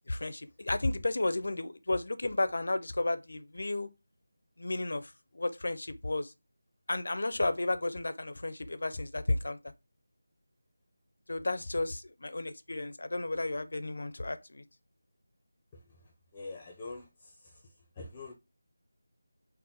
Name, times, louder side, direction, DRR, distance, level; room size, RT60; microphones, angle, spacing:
voice 1, 0.1-3.9 4.6-6.3 6.9-9.7 11.3-14.6, left 2 dB, 65° left, 0.5 m, -33 dB
voice 2, 16.3-18.3, left 3 dB, 15° left, 0.6 m, -46 dB
3.8 x 2.1 x 4.0 m
figure-of-eight pair, 175°, 0 cm